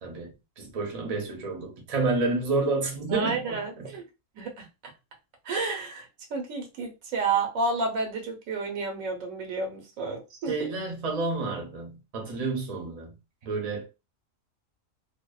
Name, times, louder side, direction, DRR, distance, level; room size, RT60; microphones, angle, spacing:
voice 1, 0.0-3.9 10.5-13.1 13.4-13.9, right 3 dB, 40° right, 0.6 m, -30 dB
voice 2, 3.1-4.0 4.4-4.7 5.4-10.7, right 4 dB, 80° right, 1.1 m, -31 dB
2.6 x 2.1 x 2.2 m
omnidirectional pair, 1.4 m